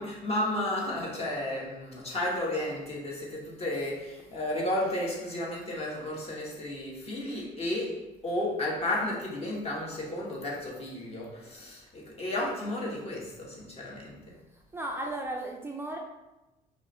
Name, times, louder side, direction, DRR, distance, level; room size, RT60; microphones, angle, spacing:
voice 1, 0.0-14.4, left 1 dB, 35° left, -3 dB, 1.5 m, -33 dB
voice 2, 14.5-16.0, right 1 dB, 15° right, 0 dB, 0.4 m, -35 dB
5.1 x 3.1 x 3.3 m, 1.0 s
cardioid pair, 110°, 17 cm